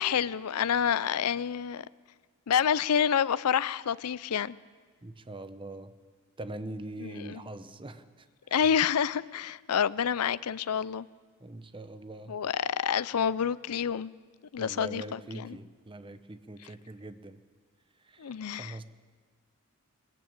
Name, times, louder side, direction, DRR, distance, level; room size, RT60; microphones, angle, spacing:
voice 1, 0.0-1.8 2.5-4.6 7.0-7.4 8.5-11.1 12.3-14.1 14.5-15.6 18.2-18.8, left 8 dB, 80° left, 0.5 m, -28 dB
voice 2, 5.0-5.9 6.4-8.7 11.4-12.4 14.6-17.4 18.0-18.8, right 1 dB, 25° right, 0.9 m, -43 dB
20.5 x 15.5 x 8.8 m
head